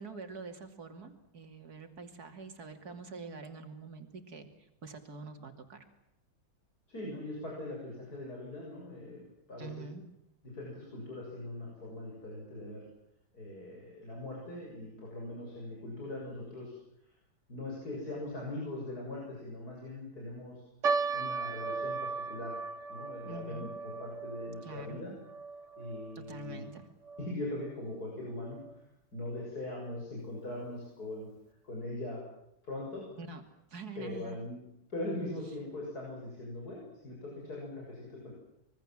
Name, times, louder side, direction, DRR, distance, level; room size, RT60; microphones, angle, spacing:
voice 1, 0.0-5.8 9.6-10.0 23.2-23.7 24.6-25.0 26.1-26.9 33.2-33.4 33.7-34.4, right 4 dB, 85° right, 6 dB, 3.2 m, -45 dB
voice 2, 6.9-9.9 10.5-12.8 13.3-16.8 17.5-20.6 21.1-22.5 22.9-25.1 25.8-26.6 27.2-28.6 29.1-31.3 31.6-32.3 32.6-33.0 34.0-34.6 34.9-38.3, left 1 dB, 90° left, -3 dB, 7.8 m, -41 dB
sound 1, 20.8-27.3 27.6-27.7 28.4-28.7 29.3-29.4 29.8-29.9, right 4 dB, 55° right, 1.6 m, -37 dB
26.0 x 23.5 x 7.6 m, 0.84 s
omnidirectional pair, 1.6 m